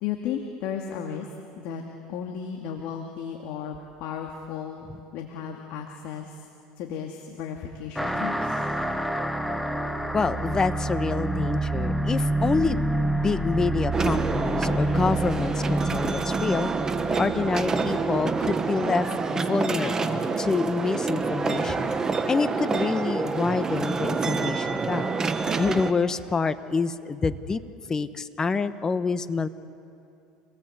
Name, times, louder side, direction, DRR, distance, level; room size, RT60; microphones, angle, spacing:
voice 1, 0.0-1.3 1.6-1.8 2.1-6.5 6.8-8.6, left 8 dB, 65° left, 2 dB, 2.3 m, -34 dB
sound 1, 7.9-18.9, right 1 dB, ahead, 1.3 m, -28 dB
voice 2, 10.1-16.7 17.2-19.1 19.3-21.9 22.3-25.0 25.6-27.6 27.9-29.5, left 4 dB, 20° left, 12 dB, 1.2 m, -27 dB
sound 2, 13.9-25.9, right 4 dB, 25° right, 1.4 m, -27 dB
27.5 x 18.5 x 8.1 m, 2.6 s
supercardioid pair, 105°, 3 cm